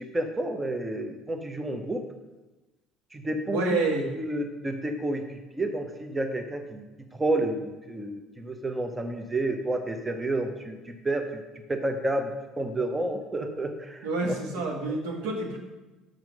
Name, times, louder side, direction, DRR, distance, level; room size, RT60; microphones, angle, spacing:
voice 1, 0.0-2.0 3.1-3.8 4.1-6.8 7.1-11.4 11.7-14.4 14.9-15.0, right 1 dB, 20° right, 6 dB, 0.8 m, -30 dB
voice 2, 3.5-4.1 14.0-15.6, right 2 dB, 70° right, 1 dB, 1.2 m, -28 dB
6.4 x 5.9 x 5.2 m, 1.1 s
figure-of-eight pair, 60°, 0 cm